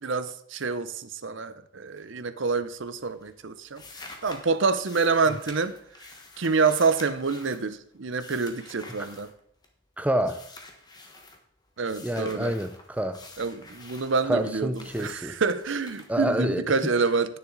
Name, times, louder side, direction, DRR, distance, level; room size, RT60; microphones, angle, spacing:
voice 1, 0.0-3.8 4.2-5.8 6.4-9.3 11.8-12.5 13.4-17.4, right 4 dB, 60° right, 0.7 m, -27 dB
sound 1, 2.4-2.8 3.1-9.8 10.2-11.4 11.8-16.8, left 2 dB, 20° left, 1.3 m, -48 dB
voice 2, 10.0-10.4 12.0-13.2 14.3-15.4 16.1-16.6, right 1 dB, 5° right, 0.6 m, -27 dB
10.0 x 9.6 x 4.0 m
head